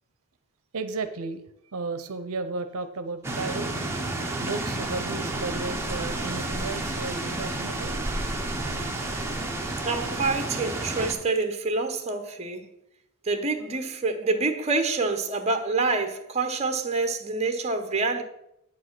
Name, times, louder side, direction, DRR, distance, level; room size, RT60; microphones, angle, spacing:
voice 1, 0.7-3.8 4.4-8.2 8.5-8.6, right 3 dB, 70° right, 0.6 m, -34 dB
sound 1, 3.2-11.1, right 2 dB, 10° right, 1.0 m, -30 dB
voice 2, 9.8-12.7 13.2-18.2, right 3 dB, 30° right, 0.9 m, -27 dB
8.3 x 5.1 x 6.0 m
head